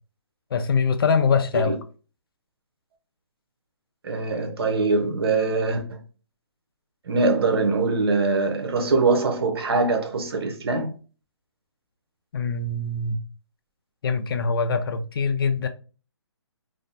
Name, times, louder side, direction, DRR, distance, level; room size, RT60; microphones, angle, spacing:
voice 1, 0.5-1.8 12.3-13.2 14.0-15.7, left 5 dB, 55° left, 0.4 m, -23 dB
voice 2, 4.0-6.0 7.1-10.9, right 3 dB, 60° right, 0.7 m, -23 dB
2.6 x 2.0 x 2.6 m
hypercardioid pair, 150°, 14 cm